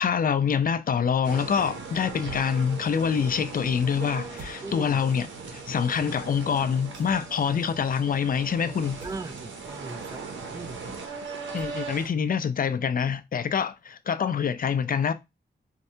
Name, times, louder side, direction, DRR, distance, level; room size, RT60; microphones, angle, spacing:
voice 1, 0.0-9.0 11.5-15.1, left 7 dB, 50° left, 0.4 m, -26 dB
sound 1, 1.2-12.1, right 4 dB, 90° right, 0.9 m, -39 dB
sound 2, 4.4-4.6 6.9-7.5 9.0-9.3 11.6-12.1, right 1 dB, 75° right, 1.4 m, -46 dB
voice 2, 4.6-5.0 9.0-10.2 10.5-10.8, right 3 dB, 20° right, 0.5 m, -38 dB
4.3 x 2.2 x 2.7 m
cardioid pair, 55°, 19 cm